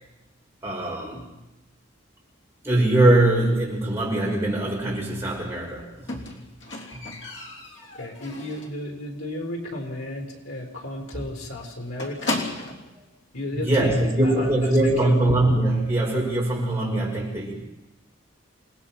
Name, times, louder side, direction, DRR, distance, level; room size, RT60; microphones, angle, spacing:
voice 1, 0.6-1.3 2.6-6.3 6.9-7.1 11.1-11.2 13.5-17.5, right 1 dB, 10° right, -4 dB, 6.3 m, -22 dB
Squeak, 6.1-8.9 9.2-9.6 9.9-10.0 10.3-10.4 10.7-10.8 11.1-12.9 13.8-13.9, left 2 dB, 60° left, 3.5 m, -34 dB
voice 2, 7.9-12.4 13.3-14.0 14.2-15.2, left 1 dB, 85° left, 3 dB, 4.4 m, -33 dB
28.5 x 19.5 x 6.0 m, 0.98 s
head